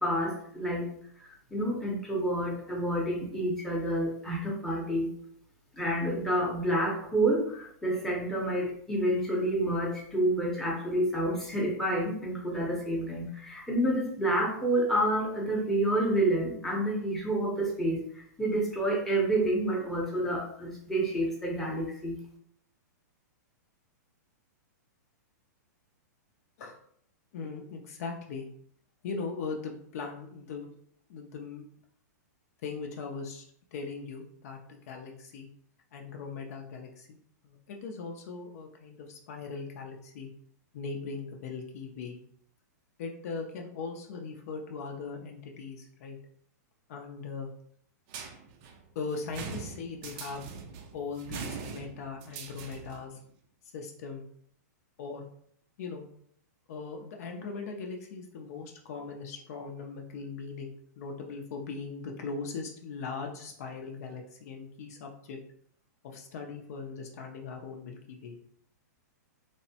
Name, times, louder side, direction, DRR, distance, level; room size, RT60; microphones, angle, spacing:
voice 1, 0.0-0.9 1.2-5.1 5.7-22.2, right 1 dB, 5° left, -3 dB, 0.7 m, -29 dB
voice 2, 27.3-28.5 29.0-30.7 31.1-31.6 32.6-33.4 33.7-35.5 35.9-37.1 37.4-40.3 40.7-42.2 43.0-46.2 46.9-47.5 48.9-50.4 50.9-53.2 53.7-54.3 55.0-55.3 55.8-56.1 56.7-65.4 66.0-68.4, left 4 dB, 55° left, 2 dB, 0.5 m, -39 dB
sound 1, 48.1-53.1, right 6 dB, 40° right, 0.4 m, -42 dB
3.3 x 2.1 x 2.7 m, 0.64 s
hypercardioid pair, 135°, 10 cm